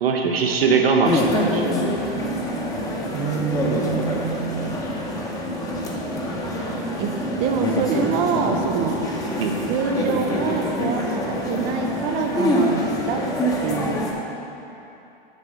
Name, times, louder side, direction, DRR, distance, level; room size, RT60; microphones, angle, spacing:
voice 1, 0.0-2.1 9.4-9.8, right 4 dB, 80° right, 1 dB, 1.1 m, -22 dB
sound 1, 1.0-14.1, equal, 10° left, 0.9 m, -25 dB
voice 2, 3.1-4.8 7.0-9.1 9.7-13.3 13.6-14.1, right 6 dB, 30° right, 3 dB, 0.5 m, -26 dB
6.8 x 4.6 x 6.7 m, 2.9 s
hypercardioid pair, 120°, 29 cm